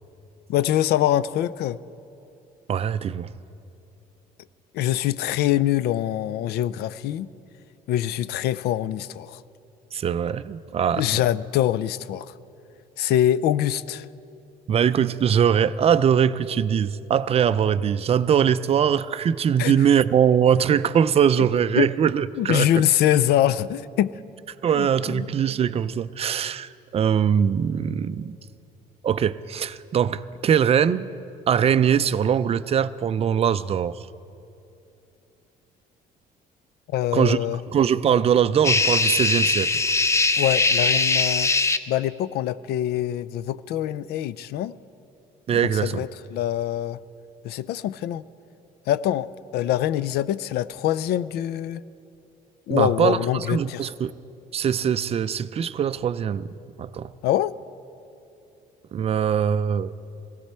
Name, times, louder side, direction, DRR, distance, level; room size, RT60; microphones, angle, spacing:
voice 1, 0.5-1.8 4.7-7.3 7.9-9.4 10.9-12.3 13.0-14.1 19.6-19.7 21.8-21.9 22.4-24.2 24.7-25.3 36.9-37.6 40.4-41.5 41.9-44.8 45.8-47.0 47.4-48.2 48.9-49.3 49.5-51.8 52.7-53.9 57.2-57.5, left 12 dB, 75° left, 18 dB, 0.4 m, -24 dB
voice 2, 2.7-3.3 9.9-11.2 14.7-22.8 24.6-28.4 29.0-31.1 31.5-34.0 37.1-37.4 37.7-39.7 45.5-46.0 52.7-54.1 54.5-56.5 56.8-57.1 58.9-59.9, right 8 dB, 35° right, 14 dB, 0.4 m, -22 dB
sound 1, 38.6-41.8, left 3 dB, 15° left, 0.5 m, -21 dB
18.0 x 16.0 x 4.3 m, 2.7 s
cardioid pair, 110°, 17 cm